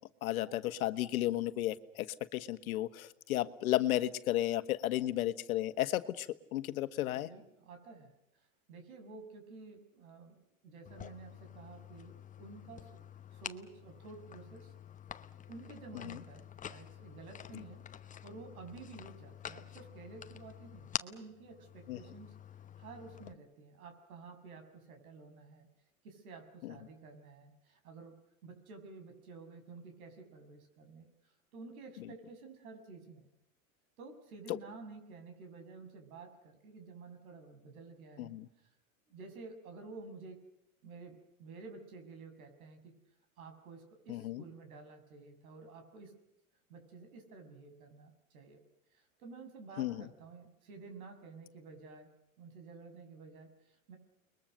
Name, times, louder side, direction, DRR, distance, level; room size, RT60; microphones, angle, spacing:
voice 1, 0.2-7.3 15.9-16.2 21.9-22.0 26.6-26.7 34.5-34.6 38.2-38.5 44.1-44.4 49.8-50.0, left 14 dB, 75° left, 11 dB, 1.6 m, -34 dB
voice 2, 7.1-8.1 8.7-13.1 13.3-14.7 15.5-22.3 22.8-25.7 26.0-28.2 28.4-33.3 34.0-38.3 39.1-40.4 40.8-42.9 43.4-46.1 46.7-48.6 48.9-52.1 52.4-54.0, right 4 dB, 75° right, 6 dB, 6.9 m, -51 dB
sound 1, 10.8-23.3, left 8 dB, 20° left, 1.0 m, -48 dB
29.5 x 22.0 x 6.7 m, 0.82 s
hypercardioid pair, 115°, 43 cm